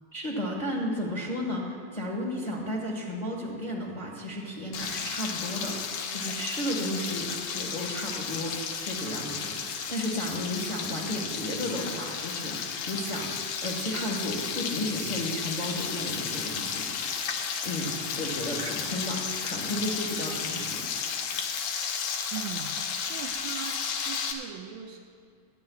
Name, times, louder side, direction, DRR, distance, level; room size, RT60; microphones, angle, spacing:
voice 1, 0.1-17.2 17.6-20.9, equal, 25° left, -3 dB, 0.9 m, -33 dB
Frying (food), 4.7-24.3, left 6 dB, 85° left, 2.4 m, -33 dB
voice 2, 22.3-25.0, right 8 dB, 75° right, 2 dB, 1.6 m, -40 dB
25.5 x 9.7 x 2.4 m, 2.3 s
omnidirectional pair, 3.4 m